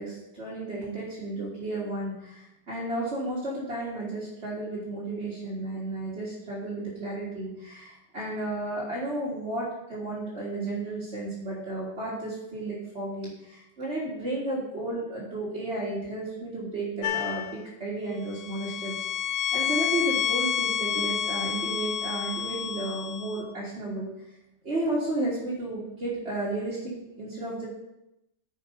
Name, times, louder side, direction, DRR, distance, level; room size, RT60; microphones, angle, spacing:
voice 1, 0.0-19.1 19.5-24.1 24.6-27.7, right 2 dB, 35° right, -8 dB, 2.2 m, -33 dB
sound 1, 17.0-17.6 18.3-23.4, left 9 dB, 80° left, 1.3 m, -29 dB
10.0 x 5.5 x 5.3 m, 0.89 s
omnidirectional pair, 1.9 m